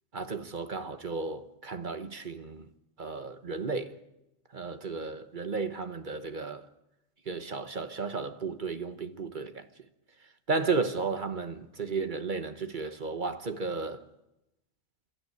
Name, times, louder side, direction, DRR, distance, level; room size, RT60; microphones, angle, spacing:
voice 1, 0.1-2.7 3.0-4.0 4.5-6.7 7.3-9.7 10.5-14.0, right 4 dB, 40° right, 1.2 m, -33 dB
29.5 x 13.0 x 9.6 m
omnidirectional pair, 1.3 m